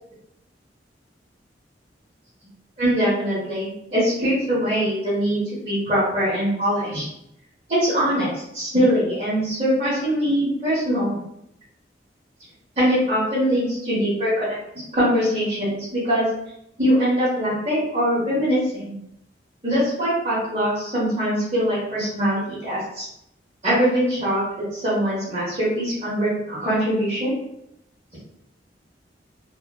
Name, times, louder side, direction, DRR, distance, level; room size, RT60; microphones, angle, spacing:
voice 1, 2.8-7.0 7.7-11.2 12.8-14.6 14.9-16.3 16.8-18.9 19.6-23.0 23.6-27.3, equal, 35° right, -11 dB, 1.0 m, -22 dB
3.0 x 2.2 x 2.2 m, 0.80 s
head